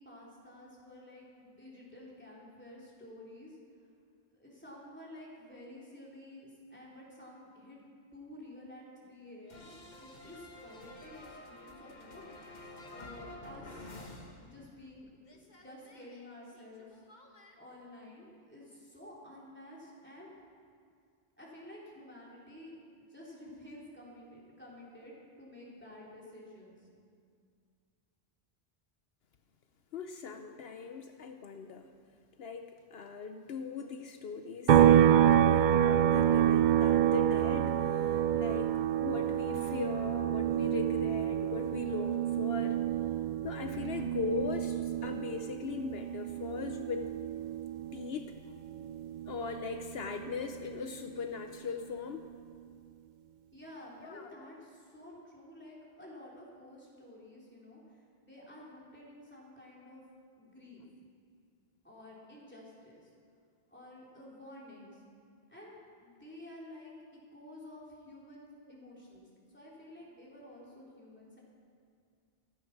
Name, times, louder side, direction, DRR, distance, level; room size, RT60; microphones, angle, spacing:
voice 1, 0.0-3.6 4.3-7.8 8.1-12.5 12.9-14.0 14.4-17.0 17.5-20.3 21.4-25.1 25.4-26.8 53.5-60.0 60.4-60.8 61.8-63.1 63.7-65.0 65.5-66.9 67.3-69.3 69.5-71.4, left 1 dB, 10° left, -5 dB, 3.7 m, -51 dB
sound 1, 9.5-15.0 15.2-17.5, left 2 dB, 45° left, 1.4 m, -50 dB
voice 2, 29.9-31.9 32.4-42.8 43.4-47.1 47.9-48.3 49.3-52.3 54.0-54.5, left 5 dB, 75° left, 6 dB, 1.0 m, -39 dB
sound 2, 34.7-48.2 48.6-50.8, right 10 dB, 55° right, 0.6 m, -28 dB
15.0 x 13.5 x 6.0 m, 2.2 s
omnidirectional pair, 1.0 m